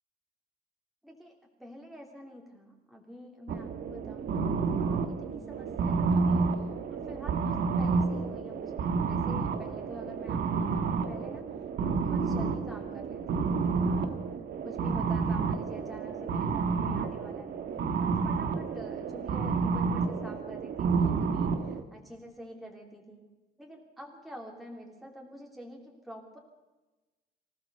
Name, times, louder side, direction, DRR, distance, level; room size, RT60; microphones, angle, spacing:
voice 1, 1.0-8.8 9.1-11.5 11.8-14.2 14.6-17.6 18.0-23.2 23.6-26.4, equal, ahead, -1 dB, 3.1 m, -48 dB
sound 1, 3.5-21.8, right 5 dB, 75° right, 1.7 m, -30 dB
24.5 x 17.0 x 6.8 m, 1.1 s
wide cardioid pair, 170°, 17 cm